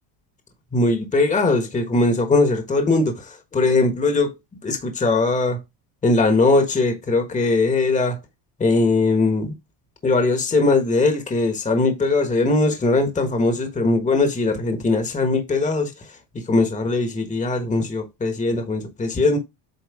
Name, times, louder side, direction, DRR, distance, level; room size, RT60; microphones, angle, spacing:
voice 1, 0.7-4.3 4.6-5.6 6.0-8.2 8.6-9.5 10.0-15.9 16.3-19.4, left 3 dB, 15° left, 1.3 m, -20 dB
8.3 x 3.1 x 4.8 m
supercardioid pair, 125°, 49 cm